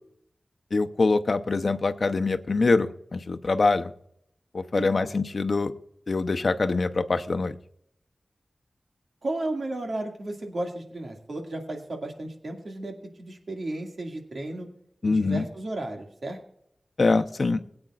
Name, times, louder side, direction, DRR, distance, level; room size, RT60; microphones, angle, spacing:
voice 1, 0.7-3.9 4.5-5.7 6.1-7.5 15.0-15.5 17.0-17.6, left 3 dB, 65° left, 8 dB, 0.7 m, -24 dB
voice 2, 4.8-5.1 9.2-14.7 15.0-16.4, right 2 dB, 70° right, 2 dB, 2.1 m, -34 dB
21.5 x 8.7 x 2.5 m, 0.71 s
wide cardioid pair, 85°, 0 cm